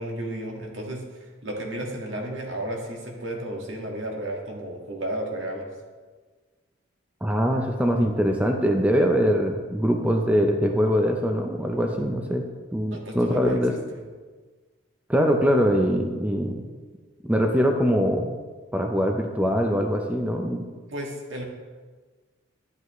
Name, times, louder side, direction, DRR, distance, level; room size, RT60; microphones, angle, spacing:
voice 1, 0.0-5.7 12.8-14.0 20.9-21.4, right 1 dB, 70° right, 0 dB, 1.7 m, -33 dB
voice 2, 7.2-12.4 12.7-13.7 15.1-16.6 17.3-18.4 18.7-20.7, equal, 5° right, 3 dB, 0.5 m, -22 dB
11.5 x 8.0 x 3.1 m, 1.4 s
head